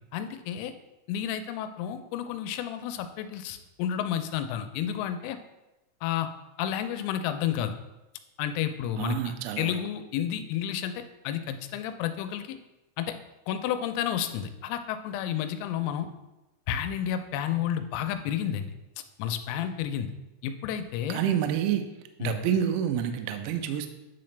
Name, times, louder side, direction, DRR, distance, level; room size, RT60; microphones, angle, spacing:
voice 1, 0.1-0.7 1.1-5.4 6.0-6.3 6.6-7.7 8.4-12.6 13.0-13.1 13.5-16.1 16.7-18.7 19.2-20.1 20.4-21.2 22.2-22.4, left 10 dB, 90° left, 8 dB, 3.2 m, -31 dB
voice 2, 9.0-9.8 21.1-21.8 22.2-23.9, right 9 dB, 85° right, 7 dB, 2.7 m, -28 dB
9.9 x 3.9 x 3.2 m, 1.0 s
omnidirectional pair, 5.8 m